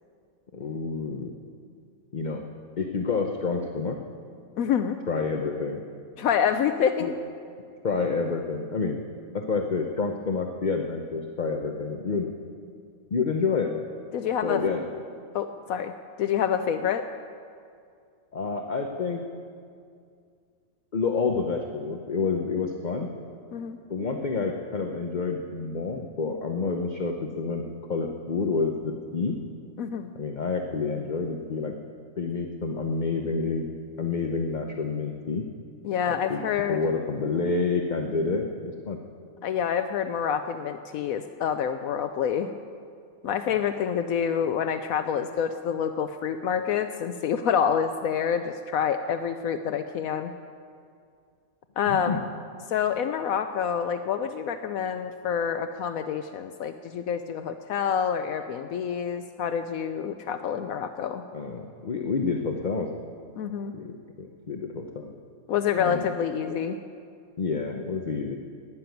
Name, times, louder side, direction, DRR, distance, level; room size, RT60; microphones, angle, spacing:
voice 1, 0.5-1.3 2.1-2.4 2.8-4.0 5.1-5.8 7.0-7.1 7.8-9.0 9.3-12.3 13.1-13.7 14.4-14.8 18.3-19.2 20.9-23.1 23.9-29.3 30.1-31.7 32.2-33.7 34.0-35.5 36.1-36.4 36.7-39.0 51.9-52.3 61.3-62.9 63.7-65.1 65.8-66.1 67.4-68.4, left 4 dB, 40° left, 3 dB, 0.9 m, -28 dB
voice 2, 4.6-5.0 6.2-7.1 14.1-14.6 15.3-15.9 16.2-17.1 23.5-23.8 29.8-30.1 35.8-36.8 39.4-42.5 43.2-50.3 51.8-52.2 52.7-61.2 63.4-63.7 65.5-66.8, left 8 dB, 75° left, 9 dB, 1.0 m, -27 dB
13.0 x 10.5 x 9.2 m, 2.3 s
omnidirectional pair, 1.5 m